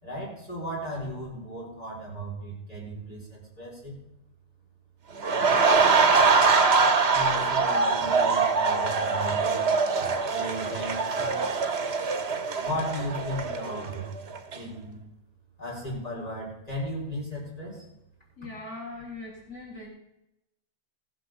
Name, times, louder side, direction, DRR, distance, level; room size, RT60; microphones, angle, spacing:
voice 1, 0.0-4.0 7.1-9.7 10.3-11.4 12.6-14.1 14.5-15.0 15.6-17.8, equal, 35° left, -4 dB, 4.6 m, -35 dB
sound 1, 5.2-14.0 14.4-14.6, right 4 dB, 60° right, 1.4 m, -23 dB
voice 2, 18.4-19.9, left 2 dB, 85° left, -1 dB, 2.6 m, -40 dB
15.0 x 7.5 x 6.0 m, 0.84 s
omnidirectional pair, 1.2 m